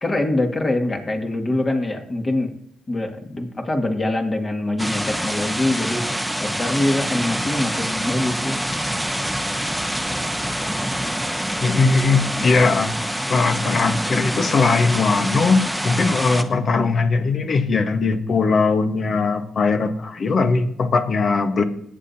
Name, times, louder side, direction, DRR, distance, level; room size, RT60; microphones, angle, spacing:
voice 1, 0.0-2.5 2.9-6.1 6.4-8.6, left 1 dB, 30° left, 3 dB, 2.1 m, -24 dB
sound 1, 4.8-16.4, equal, ahead, 1.0 m, -26 dB
voice 2, 11.6-12.9 13.3-21.6, left 4 dB, 55° left, 7 dB, 1.3 m, -19 dB
20.0 x 7.9 x 2.8 m, 0.70 s
supercardioid pair, 55°, 0 cm